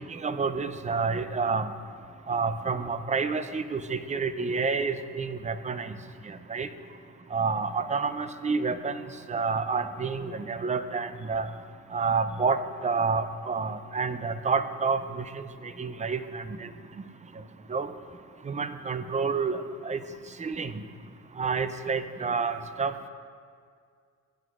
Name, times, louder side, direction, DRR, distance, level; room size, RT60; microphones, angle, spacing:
voice 1, 0.1-1.7 2.3-6.0 6.3-6.7 7.3-11.5 11.9-15.5 15.8-16.7 17.7-17.9 18.5-20.0 20.4-20.8 21.4-22.9, right 4 dB, 25° right, 11 dB, 0.5 m, -29 dB
15.0 x 9.2 x 2.5 m, 2.1 s
cardioid pair, 90°, 30 cm